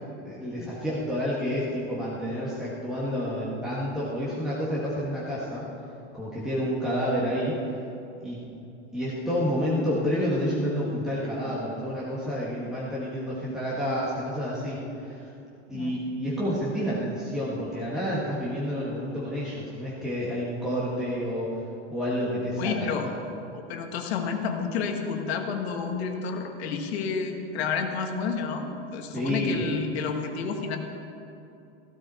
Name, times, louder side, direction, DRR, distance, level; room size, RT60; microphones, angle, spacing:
voice 1, 0.2-5.6 6.1-7.6 8.2-8.5 8.9-15.3 15.7-21.5 21.9-23.1 29.1-29.6, equal, ahead, -8 dB, 1.7 m, -29 dB
voice 2, 22.6-23.1 23.5-30.8, left 5 dB, 60° left, 4 dB, 1.7 m, -30 dB
16.0 x 13.5 x 4.3 m, 2.8 s
supercardioid pair, 155°, 35 cm